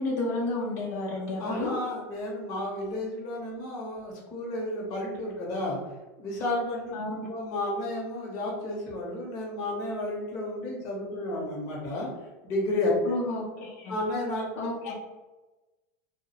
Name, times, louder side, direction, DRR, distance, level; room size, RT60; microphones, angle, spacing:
voice 1, 0.0-1.8 6.9-7.3 13.0-13.9 14.6-14.9, left 2 dB, 75° left, -4 dB, 0.6 m, -31 dB
voice 2, 1.4-5.8 6.2-6.9 7.3-12.1 12.4-12.9 13.9-14.5 14.8-14.9, left 1 dB, 40° left, -3 dB, 0.7 m, -32 dB
2.2 x 2.1 x 2.8 m, 1.1 s
supercardioid pair, 155°, 9 cm